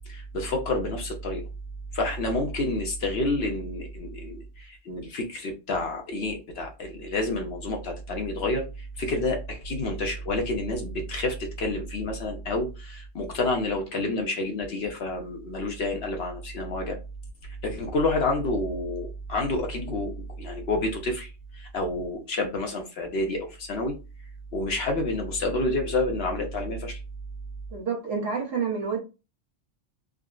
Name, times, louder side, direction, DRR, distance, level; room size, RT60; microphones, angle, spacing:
voice 1, 0.1-1.4 1.9-17.0 17.4-24.0 24.5-27.0, left 2 dB, 60° left, 0.8 m, -29 dB
voice 2, 27.7-29.0, right 5 dB, 55° right, 1.1 m, -28 dB
3.5 x 2.1 x 2.3 m
omnidirectional pair, 1.3 m